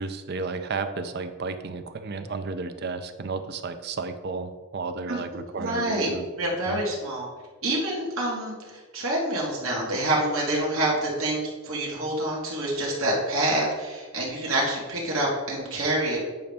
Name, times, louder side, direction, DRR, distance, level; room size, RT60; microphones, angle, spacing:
voice 1, 0.0-6.3 6.7-6.8, right 4 dB, 50° right, 9 dB, 0.5 m, -33 dB
voice 2, 5.6-6.1 6.4-7.3 7.6-16.2, right 1 dB, 70° right, -3 dB, 1.6 m, -27 dB
9.1 x 5.2 x 3.5 m, 1.4 s
head